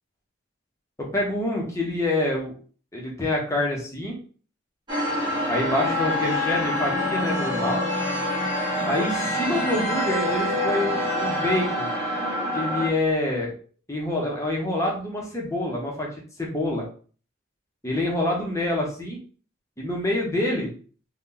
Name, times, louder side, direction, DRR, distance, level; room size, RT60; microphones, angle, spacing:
voice 1, 1.0-2.5 2.9-4.2 5.5-7.8 8.9-11.9 12.5-13.5 13.9-16.1 16.4-16.8 17.8-19.2 19.8-20.7, left 1 dB, 15° left, -2 dB, 0.9 m, -26 dB
sound 1, 4.9-12.9, left 1 dB, 20° right, 1.1 m, -26 dB
2.7 x 2.3 x 3.8 m, 0.41 s
head